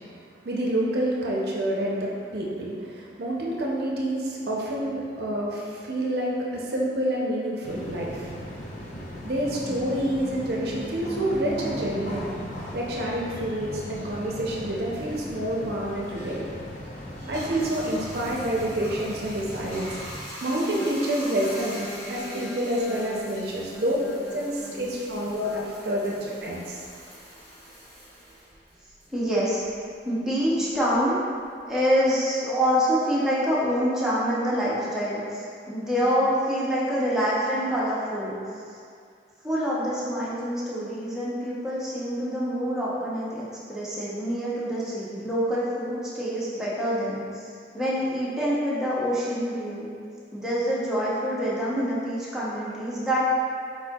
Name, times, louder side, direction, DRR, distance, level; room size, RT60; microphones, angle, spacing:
voice 1, 0.2-8.3 9.2-12.3 12.7-16.4 17.2-19.9 20.4-21.8 22.1-24.0 24.3-26.8, right 1 dB, 60° right, -4 dB, 0.5 m, -28 dB
sound 1, 7.6-20.1, equal, 45° left, 0.6 m, -38 dB
Bathtub (filling or washing), 17.1-29.9 30.3-32.1, equal, 15° left, 1.3 m, -43 dB
voice 2, 21.4-22.6 22.8-24.1 24.7-24.9 25.4-25.7 26.2-26.3 29.1-29.6 30.0-31.2 31.7-38.4 39.4-47.4 47.7-49.9 50.3-53.2, equal, 5° right, -8 dB, 0.7 m, -27 dB
4.4 x 4.2 x 2.3 m, 2.3 s
head